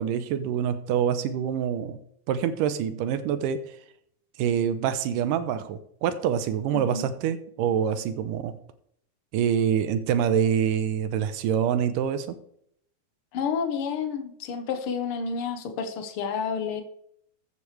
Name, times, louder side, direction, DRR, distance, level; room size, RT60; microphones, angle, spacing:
voice 1, 0.0-2.0 2.3-3.8 4.4-8.5 9.3-12.4, right 8 dB, 80° right, 11 dB, 2.2 m, -26 dB
voice 2, 6.7-7.1 13.3-16.8, left 6 dB, 85° left, 6 dB, 1.2 m, -30 dB
14.0 x 8.3 x 3.3 m, 0.67 s
omnidirectional pair, 3.9 m